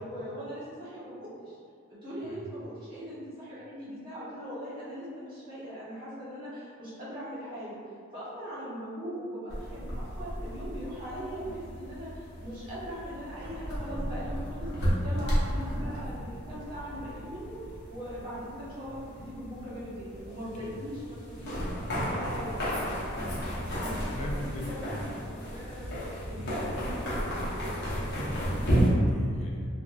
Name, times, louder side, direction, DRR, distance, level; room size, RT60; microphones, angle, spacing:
voice 1, 0.0-1.6 1.9-7.8 8.1-23.0 23.7-27.0, equal, 25° right, -10 dB, 1.0 m, -40 dB
sound 1, 9.5-28.9, equal, 60° left, 0.8 m, -33 dB
voice 2, 23.7-25.1 26.4-26.6 27.8-29.7, left 1 dB, 35° left, -2 dB, 0.4 m, -40 dB
3.6 x 2.1 x 2.4 m, 2.2 s
head